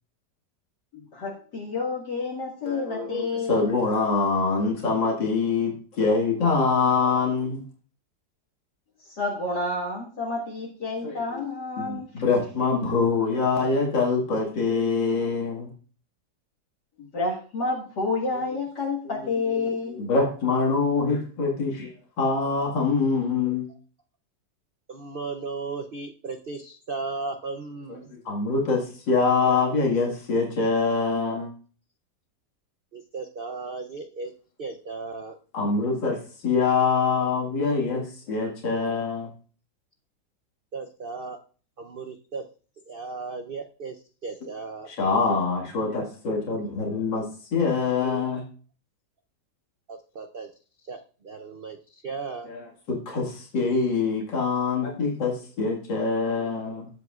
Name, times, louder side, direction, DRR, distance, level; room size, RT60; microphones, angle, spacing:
voice 1, 0.9-3.8 9.1-12.1 17.0-20.0, left 3 dB, 65° left, -5 dB, 2.3 m, -29 dB
voice 2, 2.6-7.6 11.0-11.4 11.8-15.7 19.5-21.9 22.2-23.7 27.9-28.0 28.2-31.5 35.5-36.2 36.4-39.3 44.9-47.3 47.5-48.4 52.5-56.9, left 4 dB, 85° left, -2 dB, 2.6 m, -24 dB
voice 3, 24.9-28.1 32.9-34.3 34.6-35.4 40.7-41.4 41.8-42.5 42.9-44.9 49.9-50.5 50.9-52.5, right 4 dB, 85° right, 6 dB, 0.4 m, -36 dB
18.5 x 7.9 x 2.4 m, 0.40 s
omnidirectional pair, 1.9 m